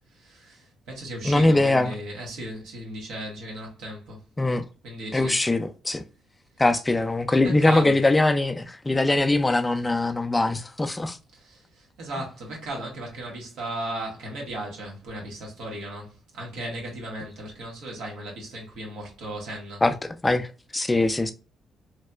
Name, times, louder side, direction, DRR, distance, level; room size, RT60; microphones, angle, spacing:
voice 1, 0.1-4.2 4.8-5.3 7.4-8.0 11.3-19.8, right 1 dB, 85° right, 1.3 m, -36 dB
voice 2, 1.2-1.9 4.4-4.7 5.1-6.0 6.6-11.2 19.8-21.3, left 2 dB, 15° left, 0.3 m, -22 dB
3.1 x 2.8 x 2.2 m
cardioid pair, 90°, 0 cm